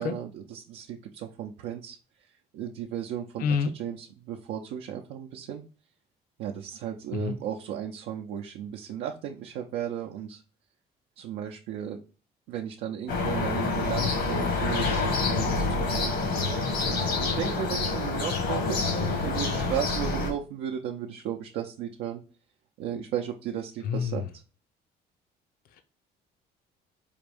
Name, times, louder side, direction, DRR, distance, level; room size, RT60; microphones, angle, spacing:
voice 1, 0.0-3.5 3.7-5.6 6.4-10.4 11.2-12.0 12.5-16.2 16.7-22.2 22.8-24.2, right 9 dB, 85° right, 0.5 m, -35 dB
voice 2, 3.4-3.7 7.1-7.4 23.8-24.3 25.7-25.8, left 6 dB, 60° left, 0.5 m, -28 dB
sound 1, 13.1-20.3, left 3 dB, 80° left, 1.4 m, -27 dB
4.9 x 2.6 x 3.4 m
cardioid pair, 110°, 17 cm